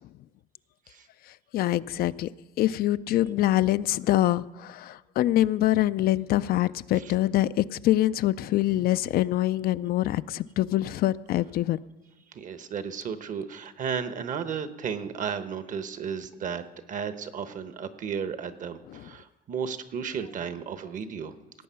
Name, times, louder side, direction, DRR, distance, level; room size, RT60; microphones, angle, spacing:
voice 1, 1.5-2.3 2.6-11.8 18.9-19.0, left 14 dB, 65° left, 15 dB, 0.4 m, -25 dB
voice 2, 12.3-21.3, right 7 dB, 50° right, 11 dB, 1.0 m, -34 dB
17.5 x 8.4 x 5.7 m, 1.1 s
cardioid pair, 110°, 17 cm